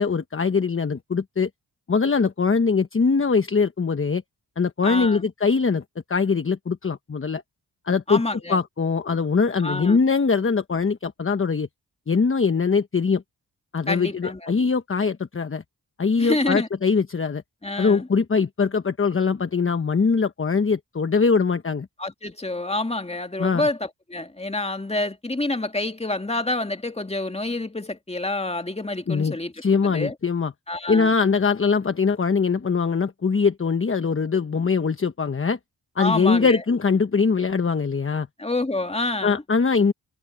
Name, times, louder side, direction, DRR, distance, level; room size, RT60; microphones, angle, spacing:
voice 1, 0.0-1.5 1.9-4.2 4.6-5.8 6.1-7.4 7.8-8.2 8.5-11.7 12.1-13.2 13.7-15.6 16.0-17.4 17.8-21.9 23.4-23.7 29.1-29.4 29.6-30.5 30.9-35.6 36.0-38.3 39.2-39.9, left 5 dB, 35° left, 1.1 m, -22 dB
voice 2, 4.8-5.3 8.1-8.6 9.6-10.0 13.9-14.5 16.2-16.7 17.6-18.1 22.0-29.5 29.8-30.1 30.7-31.1 36.0-36.6 38.4-39.4, left 2 dB, 15° left, 2.2 m, -27 dB
cardioid pair, 65°, 39 cm